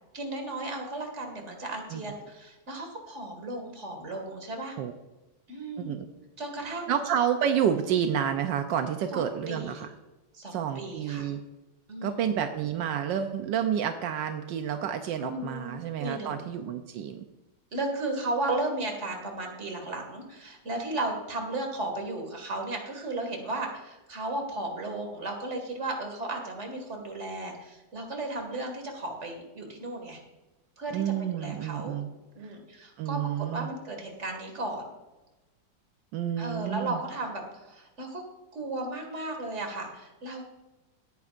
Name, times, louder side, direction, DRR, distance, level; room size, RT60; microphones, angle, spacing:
voice 1, 0.1-4.8 5.5-5.9 6.4-7.0 9.1-9.8 10.3-11.3 11.9-12.3 15.2-16.4 17.7-30.2 30.8-31.0 31.3-32.0 32.3-34.8 36.4-38.2 38.5-40.4, right 2 dB, 40° right, 3 dB, 2.3 m, -35 dB
voice 2, 6.9-9.9 10.5-11.4 12.0-17.2 30.9-32.1 32.4-32.5 33.0-33.7 36.1-37.0, right 9 dB, 80° right, 7 dB, 1.4 m, -29 dB
17.5 x 9.5 x 2.5 m, 1.0 s
omnidirectional pair, 1.9 m